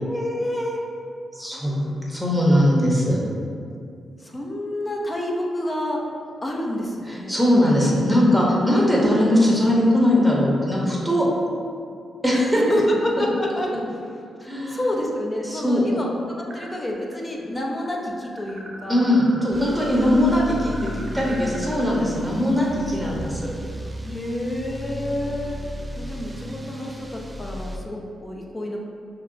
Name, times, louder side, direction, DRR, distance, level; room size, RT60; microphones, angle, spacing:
voice 1, 0.1-0.8 1.4-2.7 4.2-6.0 6.4-7.3 12.3-13.7 14.4-19.1 24.0-25.6 26.0-28.8, left 1 dB, 25° left, -1 dB, 0.6 m, -28 dB
voice 2, 1.3-1.8 2.1-3.3 7.1-11.2 12.2-12.6 14.5-14.8 15.4-15.9 18.9-23.4, left 1 dB, ahead, -4 dB, 1.0 m, -20 dB
sound 1, 16.5-17.1 17.4-22.0, right 2 dB, 65° right, 0.6 m, -40 dB
sound 2, 19.5-27.8, equal, 20° right, 0.4 m, -35 dB
5.7 x 2.1 x 2.7 m, 2.4 s
cardioid pair, 60°, 0 cm